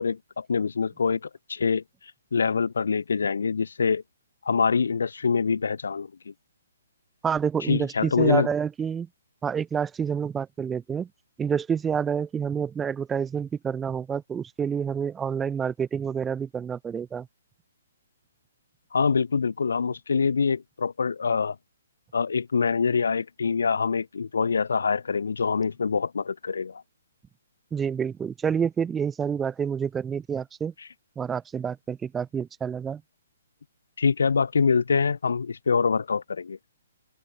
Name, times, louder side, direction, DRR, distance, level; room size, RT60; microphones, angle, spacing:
voice 1, 0.0-1.8 2.3-4.0 4.4-6.3 7.6-8.5 18.9-21.6 22.1-26.8 34.0-36.6, left 5 dB, 70° left, 0.5 m, -25 dB
voice 2, 7.2-9.1 9.4-11.1 11.4-17.3 27.7-30.7 31.2-33.0, right 7 dB, 10° right, 0.6 m, -28 dB
figure-of-eight pair, 135°, 0 cm